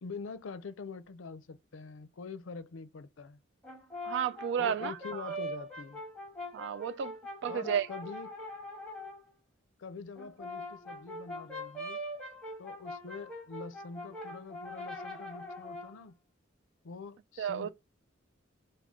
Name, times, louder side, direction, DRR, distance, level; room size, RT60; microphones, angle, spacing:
voice 1, 0.0-3.4 4.6-6.0 7.5-8.3 9.8-12.0 12.6-16.2 16.8-17.7, left 4 dB, 85° left, 0.5 m, -45 dB
Brass instrument, 3.6-9.2 10.1-16.0, left 1 dB, 5° left, 1.4 m, -42 dB
voice 2, 4.0-5.4 6.5-7.2 7.4-7.9 17.4-17.7, right 8 dB, 65° right, 0.3 m, -32 dB
4.8 x 2.3 x 3.6 m
head